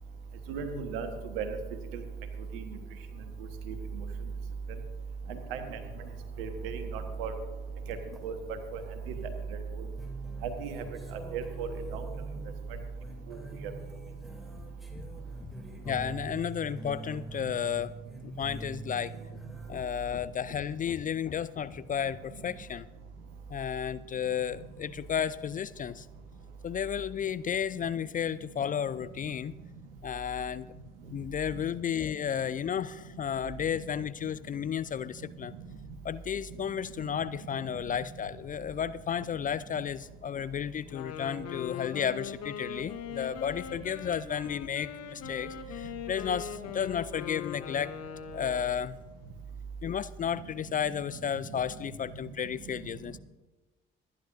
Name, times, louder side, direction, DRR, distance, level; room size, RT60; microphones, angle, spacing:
voice 1, 0.5-1.1 1.3-1.6 1.9-2.0 2.5-2.8 3.7-4.0 5.5-5.8 6.4-7.3 7.9-8.0 8.2-8.3 10.4-10.8 11.3-12.0 13.3-13.4, right 6 dB, 70° right, 8 dB, 1.3 m, -35 dB
sound 1, 7.7-8.3 8.8-8.9 9.2-9.3 9.9-19.7, right 3 dB, ahead, 2.7 m, -44 dB
voice 2, 15.9-17.9 18.2-19.4 19.7-22.9 23.5-26.1 26.6-29.5 30.0-30.8 31.0-35.5 36.0-47.9 48.3-49.0 49.8-53.2, left 8 dB, 30° left, 17 dB, 0.4 m, -33 dB
Wind instrument woodwind instrument, 40.8-48.7, left 8 dB, 55° left, 1.3 m, -41 dB
26.5 x 10.0 x 2.6 m, 1.2 s
figure-of-eight pair, 50°, 30 cm